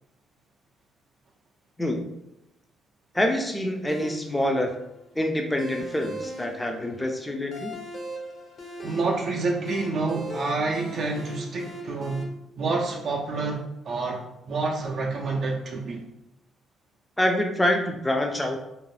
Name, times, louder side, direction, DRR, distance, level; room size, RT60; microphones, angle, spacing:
voice 1, 3.1-4.7 5.1-7.7 17.2-18.6, left 1 dB, 10° left, 3 dB, 0.4 m, -26 dB
sound 1, 3.9-12.2, equal, 45° left, 0.6 m, -39 dB
voice 2, 8.8-12.3 12.6-16.0, right 3 dB, 55° right, -1 dB, 0.4 m, -28 dB
2.5 x 2.1 x 3.2 m, 0.89 s
cardioid pair, 95°, 0 cm